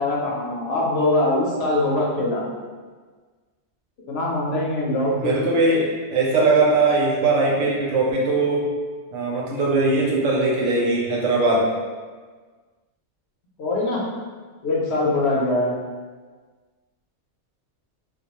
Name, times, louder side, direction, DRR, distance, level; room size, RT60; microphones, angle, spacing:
voice 1, 0.0-2.4 4.1-5.3 13.6-14.0 14.6-15.7, left 2 dB, 65° left, -4 dB, 0.8 m, -22 dB
voice 2, 5.2-8.7 9.1-11.6, right 3 dB, 75° right, -4 dB, 0.9 m, -20 dB
2.3 x 2.2 x 2.9 m, 1.5 s
omnidirectional pair, 1.3 m